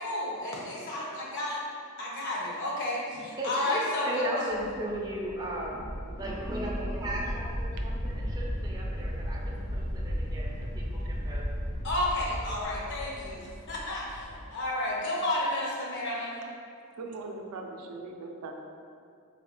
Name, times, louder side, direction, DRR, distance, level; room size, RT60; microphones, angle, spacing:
voice 1, 0.0-1.6 2.0-4.4 11.8-16.3, left 1 dB, 55° left, -4 dB, 0.7 m, -32 dB
voice 2, 3.1-5.8 6.1-11.5, right 1 dB, 15° right, -4 dB, 0.4 m, -36 dB
sound 1, 4.5-14.5, equal, 80° left, 1.3 m, -35 dB
voice 3, 5.8-6.2 17.0-18.6, right 3 dB, 85° right, 2 dB, 0.4 m, -41 dB
3.9 x 2.3 x 2.9 m, 2.4 s
head